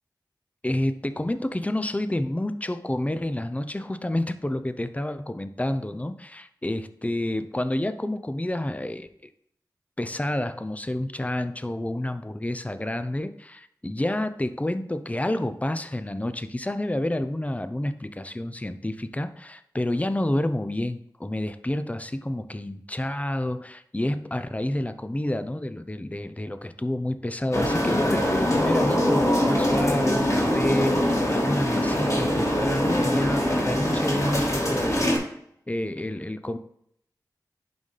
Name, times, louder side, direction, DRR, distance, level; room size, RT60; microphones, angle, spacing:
voice 1, 0.6-9.1 10.0-35.2 35.7-36.6, left 1 dB, 20° left, 10 dB, 0.6 m, -29 dB
sound 1, 27.5-35.2, equal, 45° left, 2.2 m, -23 dB
11.0 x 4.0 x 3.3 m, 0.70 s
cardioid pair, 40°, 7 cm